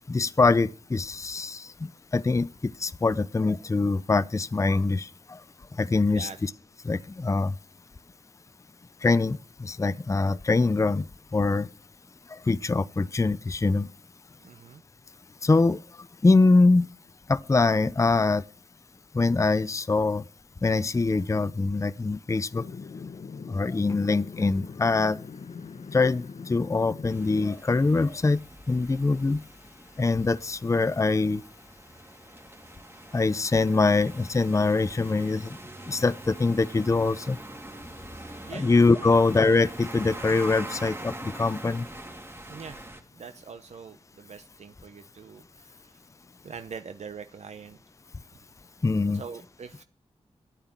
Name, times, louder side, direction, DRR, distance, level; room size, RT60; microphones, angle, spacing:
voice 1, 0.1-1.7 2.1-5.4 5.8-6.5 6.8-7.5 9.0-11.1 11.3-11.7 12.5-13.9 15.4-15.8 16.2-16.9 17.3-18.4 19.1-20.2 20.6-22.6 23.5-25.2 25.9-28.4 28.7-29.4 30.0-31.4 33.1-35.5 35.9-37.4 38.5-41.8 48.8-49.2, left 3 dB, 25° left, 0.6 m, -23 dB
voice 2, 14.4-14.8 38.1-38.7 39.0-39.2 42.5-42.8 43.1-45.9 46.4-47.8 49.1-49.8, right 6 dB, 75° right, 0.8 m, -43 dB
sound 1, 22.5-27.5, left 5 dB, 65° left, 0.9 m, -41 dB
sound 2, 27.1-43.0, right 1 dB, 20° right, 2.6 m, -43 dB
11.5 x 8.8 x 7.3 m
cardioid pair, 65°, 12 cm